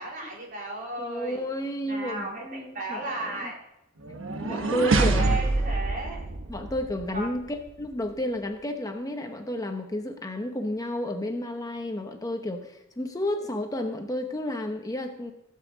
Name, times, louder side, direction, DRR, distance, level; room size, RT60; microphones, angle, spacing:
voice 1, 0.0-1.5 1.8-2.4 2.7-3.5 4.5-6.2 7.1-7.4, right 2 dB, 45° right, -2 dB, 3.7 m, -35 dB
voice 2, 1.0-3.5 4.4-5.4 6.5-15.3, left 1 dB, 20° left, 5 dB, 0.8 m, -31 dB
sound 1, 4.0-7.2, right 2 dB, 80° right, 1.3 m, -26 dB
16.5 x 5.6 x 7.3 m, 0.86 s
head